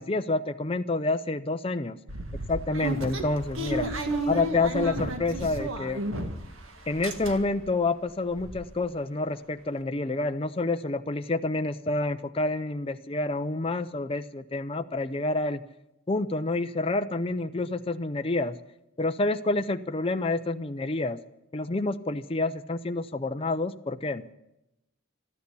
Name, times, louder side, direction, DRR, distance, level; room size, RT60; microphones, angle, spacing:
voice 1, 0.0-2.0 2.3-3.9 4.3-6.2 6.9-15.6 16.1-18.6 19.0-21.2 21.5-24.3, left 2 dB, 25° left, 7 dB, 0.6 m, -28 dB
sound 1, 2.1-6.6 6.8-7.7 8.1-8.2 8.4-8.6, right 1 dB, 75° right, 1.8 m, -32 dB
13.0 x 13.0 x 8.3 m, 0.87 s
head